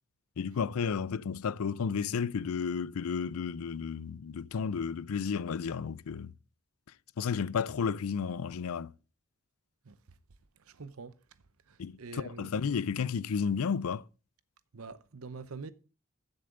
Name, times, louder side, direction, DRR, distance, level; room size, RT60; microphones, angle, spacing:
voice 1, 0.4-6.3 7.2-8.9 11.8-14.1, left 6 dB, 90° left, 0.4 m, -32 dB
voice 2, 10.6-11.2 11.7-12.5 14.7-15.7, right 4 dB, 90° right, 0.8 m, -45 dB
14.5 x 6.7 x 3.8 m
head